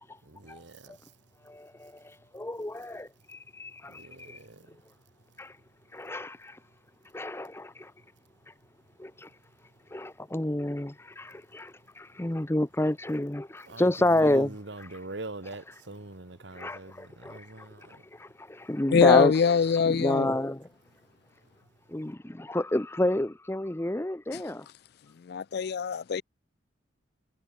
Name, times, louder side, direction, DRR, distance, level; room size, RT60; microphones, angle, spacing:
voice 1, 0.3-0.9 4.0-4.5 13.7-13.8 14.2-18.0, right 2 dB, 65° right, 1.7 m, -42 dB
voice 2, 1.5-4.4 5.4-5.5 5.9-6.6 7.1-7.9 9.0-9.3 9.9-15.0 15.4-15.7 16.5-17.7 18.1-19.3 19.9-20.6 21.9-24.7, left 1 dB, 15° left, 0.6 m, -30 dB
voice 3, 18.9-20.3 24.3-24.4 25.2-26.2, left 6 dB, 55° left, 0.4 m, -23 dB
head